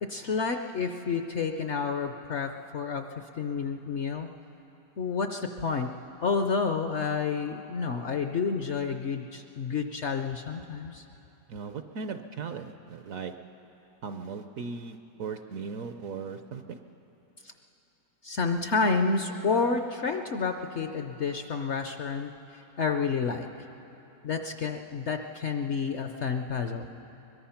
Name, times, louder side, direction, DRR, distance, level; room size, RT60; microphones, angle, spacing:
voice 1, 0.0-3.1 3.4-4.3 5.0-5.9 6.2-11.0 17.4-17.5 18.2-23.5 24.2-26.9, left 5 dB, 60° left, 6 dB, 0.8 m, -30 dB
voice 2, 11.5-13.3 14.0-16.8, right 5 dB, 65° right, 8 dB, 1.0 m, -38 dB
22.5 x 21.0 x 5.8 m, 3.0 s
omnidirectional pair, 1.8 m